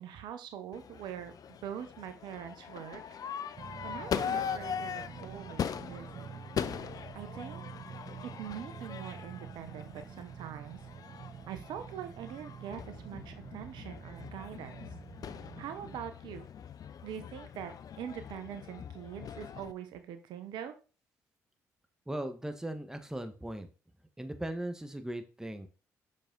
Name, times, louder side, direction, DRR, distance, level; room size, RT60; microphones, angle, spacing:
voice 1, 0.0-3.2 3.8-6.4 7.1-7.6 8.2-10.8 11.5-14.8 15.6-16.5 17.0-20.7, right 9 dB, 65° right, 9 dB, 0.9 m, -43 dB
Crowd / Fireworks, 0.7-19.7, left 8 dB, 50° left, 0.6 m, -41 dB
sound 1, 3.5-16.0, right 8 dB, 45° right, 0.4 m, -48 dB
voice 2, 22.1-23.7 24.2-25.7, right 1 dB, 5° right, 8 dB, 1.3 m, -38 dB
6.4 x 5.5 x 3.9 m, 0.34 s
hypercardioid pair, 50°, 8 cm